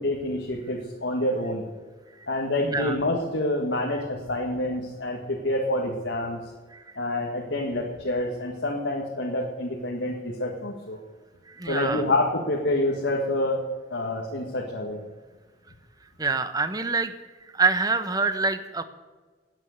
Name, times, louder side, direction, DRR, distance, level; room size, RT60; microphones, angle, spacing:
voice 1, 0.0-1.6 2.3-6.4 7.0-11.0 11.7-13.6 13.9-15.0, left 1 dB, 80° left, 0 dB, 2.0 m, -27 dB
voice 2, 2.6-3.0 6.7-7.0 11.5-12.0 16.2-17.1 17.5-18.8, right 4 dB, 20° right, 11 dB, 0.9 m, -26 dB
18.5 x 9.0 x 6.8 m, 1.3 s
head